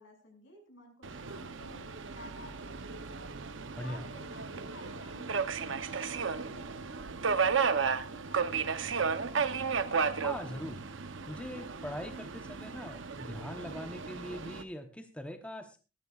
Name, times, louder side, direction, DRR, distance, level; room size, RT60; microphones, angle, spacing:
voice 1, 0.0-9.3, left 2 dB, 60° left, 3 dB, 6.2 m, -55 dB
Subway metro underground, 1.0-14.6, right 5 dB, 60° right, 0.8 m, -34 dB
voice 2, 10.2-10.8 11.3-15.8, left 1 dB, 5° left, 6 dB, 0.8 m, -41 dB
19.5 x 14.0 x 2.4 m, 0.32 s
head